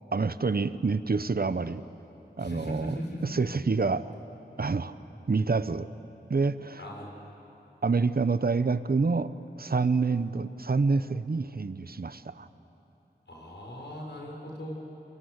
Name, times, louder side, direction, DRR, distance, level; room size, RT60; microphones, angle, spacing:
voice 1, 0.1-1.8 2.4-2.9 3.2-4.1 4.6-4.9 5.3-5.9 6.3-6.8 7.8-9.3 9.6-12.5, right 4 dB, 60° right, 13 dB, 0.9 m, -27 dB
voice 2, 2.4-3.3 6.8-7.1 13.3-14.7, equal, 80° left, -1 dB, 6.1 m, -38 dB
28.0 x 24.5 x 8.1 m, 3.0 s
wide cardioid pair, 45°, 18 cm